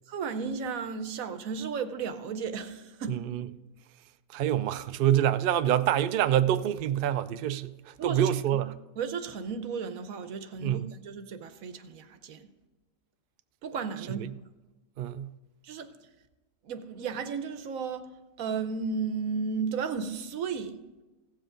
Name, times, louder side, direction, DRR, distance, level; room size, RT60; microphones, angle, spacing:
voice 1, 0.1-3.3 8.0-8.7 9.0-12.5 13.6-14.3 15.6-15.9 16.6-18.1 18.4-20.8, right 5 dB, 85° right, 1.2 m, -34 dB
voice 2, 3.1-3.4 4.3-8.7 10.6-10.9 14.2-14.3 15.0-15.3, right 11 dB, 70° right, 0.5 m, -26 dB
16.0 x 7.5 x 3.8 m
omnidirectional pair, 1.4 m